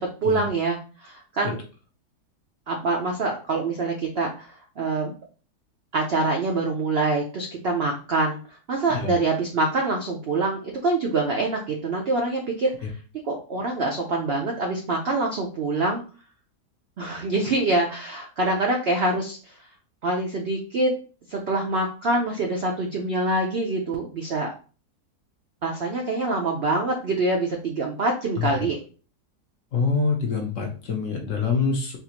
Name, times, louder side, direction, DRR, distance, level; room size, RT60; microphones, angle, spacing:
voice 1, 0.0-1.6 2.7-4.5 4.8-5.1 5.9-8.4 8.7-12.7 13.2-16.0 17.0-19.5 20.0-20.9 21.3-24.5 25.6-28.8, right 2 dB, 75° right, 1 dB, 0.5 m, -25 dB
voice 2, 29.7-32.0, left 5 dB, 60° left, 2 dB, 0.9 m, -25 dB
3.5 x 2.4 x 2.9 m, 0.37 s
omnidirectional pair, 1.7 m